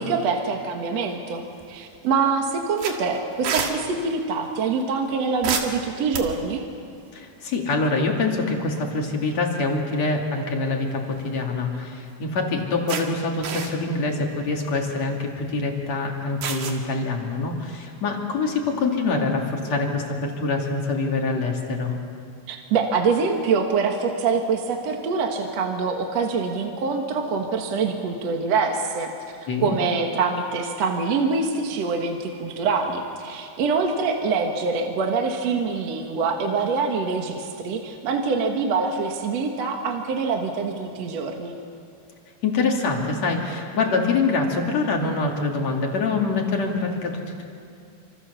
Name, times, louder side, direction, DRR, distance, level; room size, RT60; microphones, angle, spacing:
voice 1, 0.0-6.6 22.5-29.1 29.6-41.5, right 4 dB, 55° right, 3 dB, 2.2 m, -25 dB
sound 1, 1.5-2.0 2.3-2.4 2.8-3.7 5.4-6.6 8.2-8.4 8.8-8.9 10.9-11.5 12.1-12.2 12.9-13.0 13.4-14.0 14.5-14.7 16.4-16.8, right 7 dB, 75° right, 3.7 m, -29 dB
voice 2, 7.1-21.9 29.5-29.8 42.4-47.4, left 3 dB, 45° left, 1 dB, 3.4 m, -25 dB
27.0 x 26.5 x 6.9 m, 2.5 s
omnidirectional pair, 4.5 m